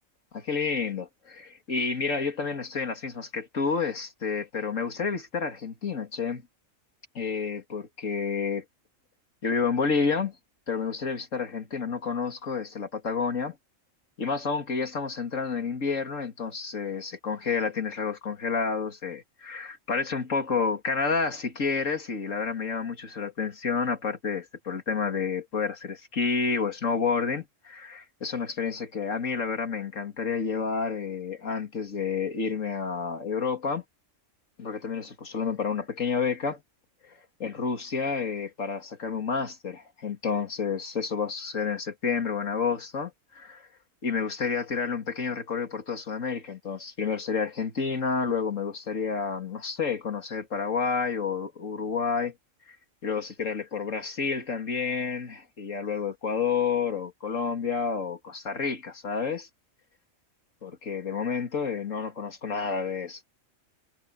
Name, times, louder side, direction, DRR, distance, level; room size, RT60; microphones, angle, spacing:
voice 1, 0.3-6.4 7.1-8.6 9.4-10.3 10.7-13.6 14.2-33.8 34.6-36.6 37.0-43.6 44.0-52.3 52.7-52.8 53.0-59.5 60.6-63.3, left 5 dB, 70° left, 2.8 m, -30 dB
omnidirectional pair, 1.4 m